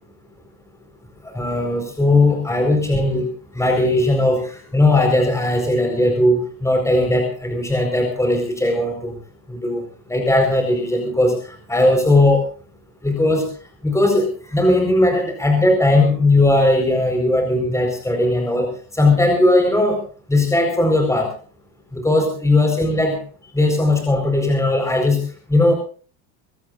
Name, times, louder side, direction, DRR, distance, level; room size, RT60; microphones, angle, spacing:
voice 1, 1.2-3.3 3.5-9.1 9.5-9.8 10.1-12.5 13.0-13.5 13.8-20.0 20.3-21.3 21.9-23.2 23.5-25.2 25.5-25.7, left 2 dB, 5° left, 4 dB, 4.6 m, -18 dB
24.0 x 17.0 x 2.6 m, 0.40 s
hypercardioid pair, 90°, 44 cm